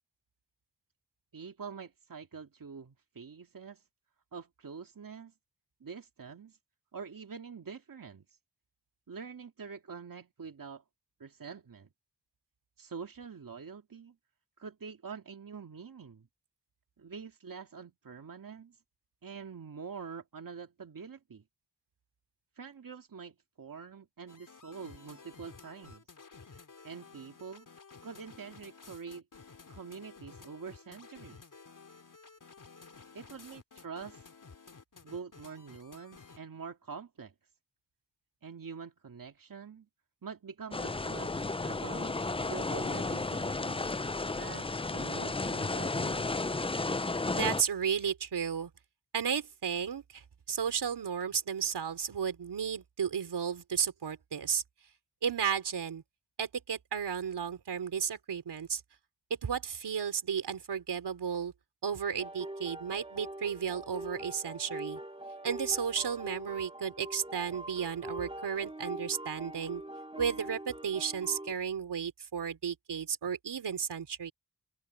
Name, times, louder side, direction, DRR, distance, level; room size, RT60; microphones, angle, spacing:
voice 1, 1.3-3.8 4.3-5.3 5.8-6.6 6.9-8.3 9.1-10.8 11.2-11.9 12.8-14.2 14.6-16.3 17.0-18.8 19.2-21.4 22.6-26.0 26.8-27.7 28.0-29.2 29.7-31.5 33.1-34.2 35.0-37.3 38.4-39.9 40.2-42.2 42.5-43.9 44.3-46.3, right 6 dB, 55° right, 2.3 m, -45 dB
sound 1, 24.3-36.4, left 4 dB, 50° left, 3.3 m, -53 dB
sound 2, 40.7-47.6, left 3 dB, 15° left, 0.6 m, -33 dB
voice 2, 47.3-48.7 49.1-54.6 55.2-56.0 56.4-58.8 59.3-61.5 61.8-65.0 65.4-69.8 70.2-74.3, right 7 dB, 85° right, 3.6 m, -33 dB
sound 3, 62.2-71.5, right 1 dB, 15° right, 2.7 m, -43 dB
open air
cardioid pair, 70°, 39 cm